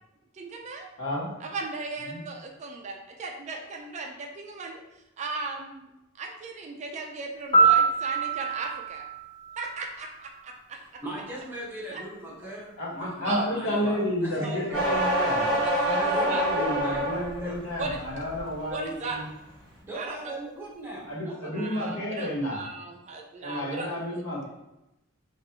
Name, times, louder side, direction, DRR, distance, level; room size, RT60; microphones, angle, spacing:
voice 1, 0.3-0.9 1.4-4.8 5.2-5.9 6.2-9.0 9.6-10.5 11.9-12.0 13.2-13.5 14.4-16.0 16.2-16.4 17.8-18.0 18.7-19.2 19.9-20.4 21.5-24.2, right 3 dB, 35° right, 2 dB, 0.3 m, -37 dB
voice 2, 1.0-1.3 2.1-2.2 12.8-15.5 15.8-19.3 21.1-22.6 23.4-24.5, equal, 85° left, -6 dB, 1.1 m, -31 dB
Piano, 7.5-10.5 18.6-18.8, right 4 dB, 25° left, 0.6 m, -25 dB
voice 3, 11.0-15.1 16.0-17.7 19.8-21.9, right 1 dB, 10° right, -6 dB, 0.9 m, -39 dB
sound 1, 14.7-17.4 17.9-18.4, equal, 5° left, 1.2 m, -26 dB
3.3 x 2.4 x 2.9 m, 0.92 s
head